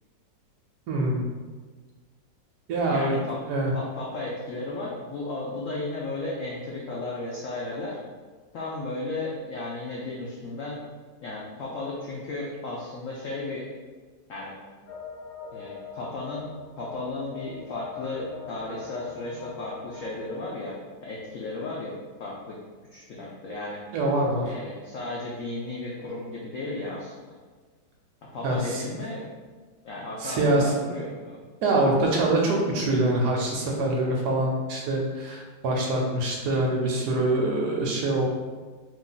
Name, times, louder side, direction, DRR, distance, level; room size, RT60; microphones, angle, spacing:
voice 1, 0.9-1.2 2.7-3.2 3.5-3.7 23.9-24.5 28.4-28.8 30.2-30.9 31.6-38.3, right 2 dB, 70° right, -1 dB, 1.1 m, -24 dB
voice 2, 2.9-3.4 3.7-8.0 8.5-10.8 11.2-13.7 14.3-14.5 15.5-16.5 16.8-20.7 21.0-22.6 22.9-23.8 24.4-27.3 28.3-29.3 29.8-31.4, left 2 dB, 90° left, -4 dB, 0.7 m, -34 dB
sound 1, 14.9-20.4, left 5 dB, 65° left, 1.4 m, -42 dB
2.8 x 2.6 x 3.8 m, 1.4 s
omnidirectional pair, 2.0 m